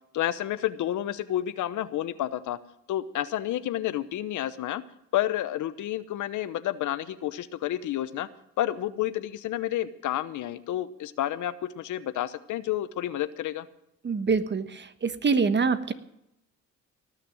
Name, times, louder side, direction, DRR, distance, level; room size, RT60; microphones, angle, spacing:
voice 1, 0.1-2.6 2.9-4.8 5.1-8.3 8.6-13.7, left 13 dB, 75° left, 14 dB, 1.0 m, -30 dB
voice 2, 14.0-14.6 15.2-15.9, right 4 dB, 35° right, 11 dB, 1.3 m, -24 dB
18.5 x 6.7 x 8.8 m, 0.82 s
cardioid pair, 90°, 30 cm